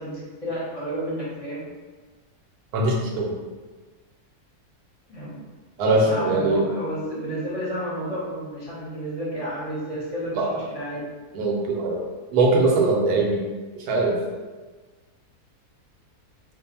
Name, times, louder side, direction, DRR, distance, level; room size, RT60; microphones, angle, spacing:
voice 1, 0.0-1.6 5.1-5.4 6.1-11.0, equal, 25° left, -8 dB, 1.1 m, -31 dB
voice 2, 2.7-3.3 5.8-6.7 10.4-10.5 11.3-12.0 12.3-13.4 13.9-14.2, right 2 dB, 80° right, -1 dB, 1.2 m, -21 dB
2.6 x 2.5 x 4.0 m, 1.3 s
omnidirectional pair, 1.6 m